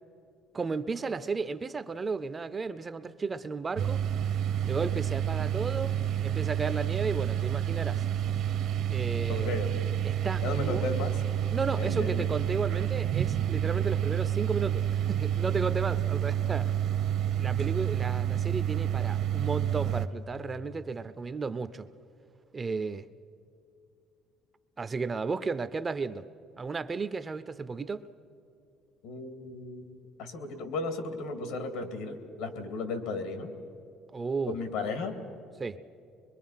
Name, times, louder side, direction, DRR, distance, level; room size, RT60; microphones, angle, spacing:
voice 1, 0.5-4.0 4.7-8.0 8.9-9.6 10.0-10.8 11.5-16.8 17.4-21.9 22.5-23.1 24.8-26.2 26.6-28.0 34.1-34.6 35.6-35.8, right 4 dB, 20° right, 0.4 m, -34 dB
sound 1, 3.8-20.1, right 10 dB, 50° right, 0.7 m, -29 dB
voice 2, 9.3-9.9 10.4-11.2 11.8-12.3 29.0-33.5 34.5-35.2, left 3 dB, 85° left, 2.3 m, -35 dB
23.5 x 23.0 x 5.7 m
cardioid pair, 170°, 0 cm